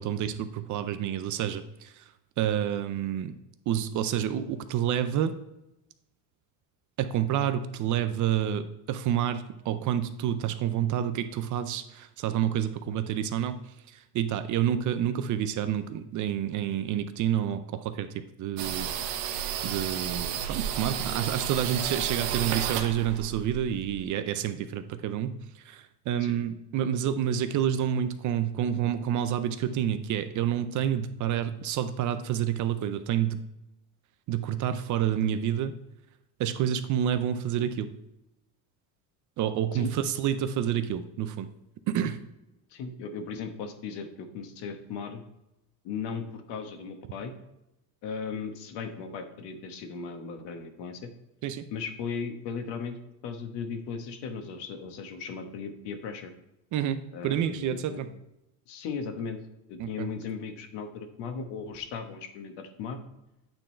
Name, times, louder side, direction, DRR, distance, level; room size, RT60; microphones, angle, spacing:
voice 1, 0.0-2.1 2.4-3.3 3.7-5.4 7.0-13.6 13.9-18.9 19.6-33.4 34.3-35.8 36.4-37.9 39.4-41.5 41.9-42.2 51.4-51.6 56.7-58.1 59.8-60.1, right 10 dB, 45° right, 11 dB, 0.5 m, -29 dB
sound 1, 18.6-24.0, right 9 dB, 70° right, 1.0 m, -32 dB
voice 2, 42.7-45.2 45.8-47.3 48.0-51.1 51.7-53.0 53.2-56.3 57.1-58.0 58.7-59.4 59.7-63.0, left 5 dB, 65° left, 7 dB, 1.2 m, -37 dB
8.9 x 3.8 x 4.3 m, 0.91 s
cardioid pair, 140°, 44 cm